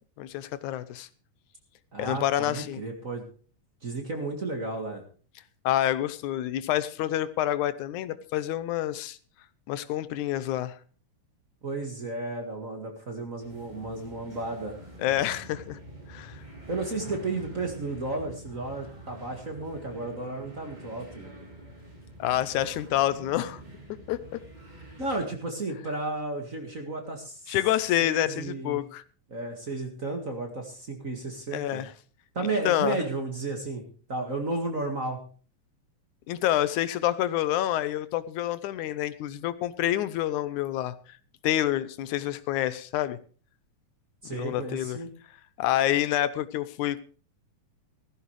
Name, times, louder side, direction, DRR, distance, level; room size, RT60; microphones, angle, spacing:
voice 1, 0.2-1.1 2.0-2.8 5.6-9.2 9.7-10.8 15.0-15.8 16.1-16.4 22.2-23.6 24.1-24.4 27.5-29.0 31.5-31.9 32.7-33.0 36.3-41.0 41.4-43.2 44.3-45.0 45.6-47.0, left 13 dB, 80° left, 2.1 m, -27 dB
voice 2, 1.9-3.3 3.8-5.0 11.6-14.8 16.7-21.3 25.0-27.6 28.0-28.8 29.3-31.8 32.3-33.8 34.1-35.2 44.2-45.1, right 2 dB, 30° right, 1.8 m, -33 dB
sound 1, 13.4-25.3, right 1 dB, 15° right, 3.1 m, -46 dB
16.0 x 14.5 x 3.2 m
omnidirectional pair, 3.5 m